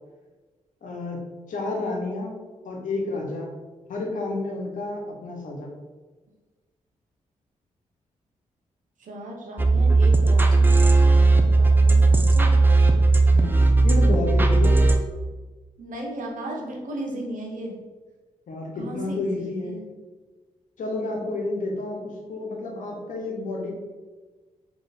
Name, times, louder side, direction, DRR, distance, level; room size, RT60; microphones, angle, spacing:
voice 1, 0.8-2.3 2.6-3.5 3.9-5.7 13.3-14.8 18.5-19.8 20.8-23.8, left 2 dB, 70° left, 0 dB, 1.0 m, -30 dB
voice 2, 9.0-12.6 15.2-15.4 15.8-17.7 18.7-19.9, right 1 dB, 70° right, 0 dB, 0.9 m, -36 dB
sound 1, 9.6-15.0, right 3 dB, 15° right, 0.5 m, -17 dB
3.2 x 3.1 x 4.0 m, 1.3 s
cardioid pair, 60°, 14 cm